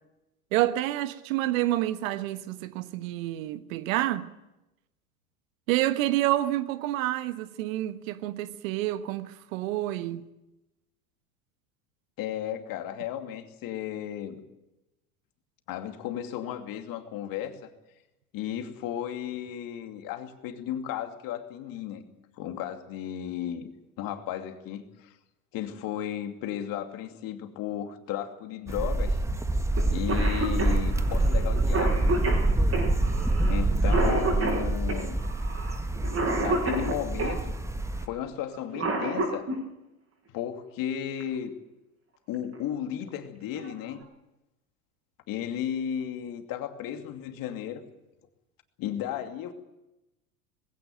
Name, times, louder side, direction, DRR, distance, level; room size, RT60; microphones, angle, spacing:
voice 1, 0.5-4.3 5.7-10.2, right 15 dB, 60° right, 1.3 m, -28 dB
voice 2, 12.2-14.4 15.7-17.7 18.3-22.0 22.4-23.7 24.0-25.1 25.5-29.2 29.9-32.2 33.5-35.2 36.4-37.5 38.0-39.5 40.3-41.5 42.3-44.0 45.3-47.8 48.8-49.5, left 10 dB, 50° left, 2.7 m, -34 dB
sound 1, 28.7-38.1, right 2 dB, 5° right, 1.4 m, -26 dB
Cough, 29.8-29.9 30.1-37.4 38.5-39.6 41.2-41.3 42.3-42.6 43.1-43.2 43.6-44.0, right 2 dB, 30° right, 7.8 m, -30 dB
20.5 x 16.5 x 9.2 m
hypercardioid pair, 85°, 44 cm